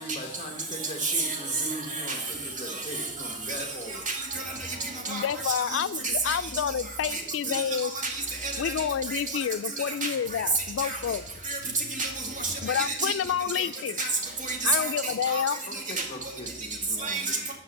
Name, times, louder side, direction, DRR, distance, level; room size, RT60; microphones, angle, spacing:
voice 1, 0.0-4.1 13.0-13.3 15.0-15.1 15.6-17.5, equal, 30° left, 4 dB, 1.1 m, -40 dB
voice 2, 1.0-1.6 1.9-2.2 2.7-3.1 3.5-5.8 6.2-6.4 7.1-7.2 7.5-7.6 7.9-8.7 9.1-9.4 10.0-10.1 10.8-11.0 11.4-13.1 13.5-13.7 14.0-14.1 14.4-15.4 15.7-15.8 17.0-17.5, right 3 dB, 40° right, -1 dB, 2.2 m, -31 dB
voice 3, 5.1-7.9 8.6-11.2 12.6-14.0 14.6-15.6, left 8 dB, 80° left, 15 dB, 0.3 m, -29 dB
9.3 x 6.0 x 7.1 m, 1.0 s
head